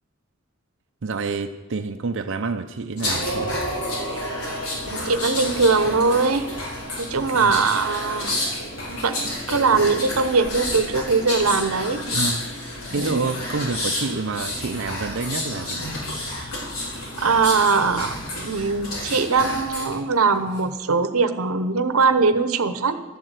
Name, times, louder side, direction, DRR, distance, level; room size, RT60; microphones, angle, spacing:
voice 1, 1.0-3.6 7.4-7.8 12.1-12.5 12.9-15.9, right 4 dB, 60° right, 5 dB, 0.6 m, -28 dB
sound 1, 3.0-19.9 20.3-20.6, left 1 dB, 90° left, 5.1 m, -30 dB
voice 2, 4.9-6.5 7.0-8.4 8.9-12.2 12.9-13.2 17.2-23.0, right 4 dB, 90° right, 11 dB, 0.9 m, -21 dB
12.5 x 7.6 x 8.1 m, 1.3 s
head